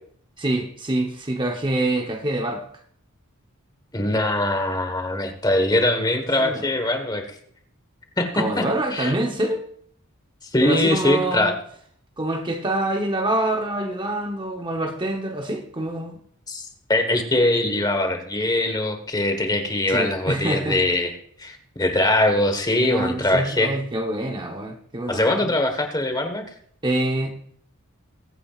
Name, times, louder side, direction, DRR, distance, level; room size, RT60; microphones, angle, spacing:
voice 1, 0.4-2.7 6.4-6.7 8.3-9.6 10.6-11.5 12.2-16.2 19.9-20.8 22.7-25.5 26.8-27.3, right 1 dB, 20° right, 3 dB, 0.9 m, -26 dB
voice 2, 3.9-7.2 8.2-9.1 10.5-11.5 16.5-21.1 21.4-23.8 25.1-26.4, left 1 dB, 20° left, 6 dB, 1.3 m, -22 dB
22.0 x 8.7 x 2.4 m, 0.62 s
head